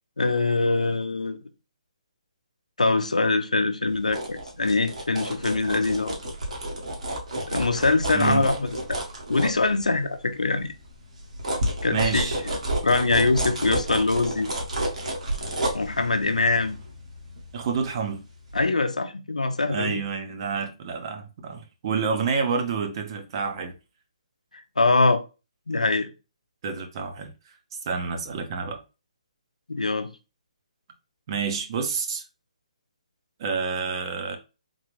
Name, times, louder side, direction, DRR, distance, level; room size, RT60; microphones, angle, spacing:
voice 1, 0.2-1.4 2.8-6.2 7.5-9.0 9.3-10.7 11.8-14.5 15.7-16.8 18.5-20.0 24.8-25.2 25.7-26.1 29.7-30.1, left 3 dB, 80° left, 0.6 m, -23 dB
sound 1, 3.9-10.2 10.6-18.1 18.5-18.6, right 1 dB, 70° right, 1.4 m, -31 dB
voice 2, 8.1-8.5 11.9-12.4 17.5-18.2 19.7-23.8 26.6-27.6 27.8-28.8 31.3-32.2 33.4-34.4, right 5 dB, 40° right, 0.7 m, -28 dB
3.8 x 2.5 x 3.1 m
figure-of-eight pair, 140°, 4 cm